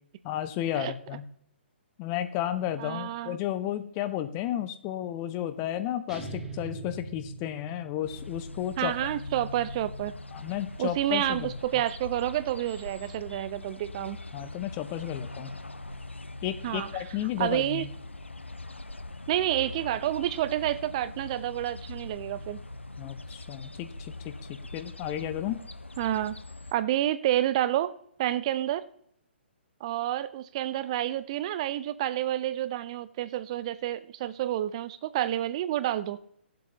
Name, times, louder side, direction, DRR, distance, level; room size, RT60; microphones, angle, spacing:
voice 1, 0.2-1.2 2.0-8.9 10.3-11.8 14.3-15.5 16.4-17.9 23.0-25.6, left 12 dB, 25° left, 10 dB, 0.6 m, -33 dB
voice 2, 2.8-3.4 8.8-10.1 10.8-14.2 16.6-17.0 17.4-17.9 19.3-22.6 26.0-26.3 26.7-28.9 29.8-36.2, right 13 dB, 30° right, 15 dB, 0.6 m, -29 dB
sound 1, 6.1-8.1, right 3 dB, 10° right, 1.7 m, -41 dB
sound 2, 8.0-26.7, left 2 dB, 80° left, 0.7 m, -42 dB
17.5 x 7.6 x 2.8 m, 0.69 s
figure-of-eight pair, 125°, 6 cm